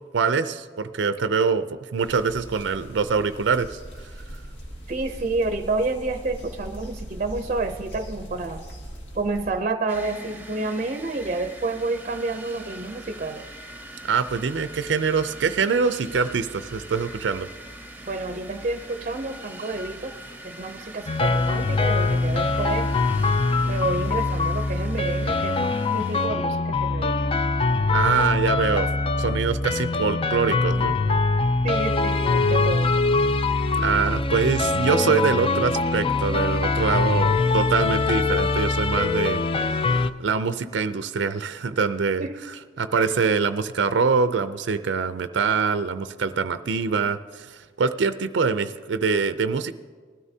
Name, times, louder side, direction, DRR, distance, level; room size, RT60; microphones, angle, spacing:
voice 1, 0.1-4.1 14.1-17.5 27.9-28.9 29.2-31.0 33.8-42.3 42.8-49.7, right 5 dB, 90° right, 11 dB, 0.5 m, -24 dB
sound 1, 2.0-9.6, equal, 85° left, 2.1 m, -40 dB
voice 2, 4.9-8.7 9.1-13.4 18.1-20.1 20.4-22.9 23.6-27.1 31.6-32.9 42.2-42.3 43.0-43.1, right 3 dB, 40° right, 8 dB, 0.5 m, -29 dB
sound 2, 9.9-26.3, right 1 dB, 10° right, 0.8 m, -42 dB
sound 3, 21.1-40.1, left 3 dB, 30° left, 0.4 m, -23 dB
20.0 x 13.0 x 2.8 m, 1.5 s
head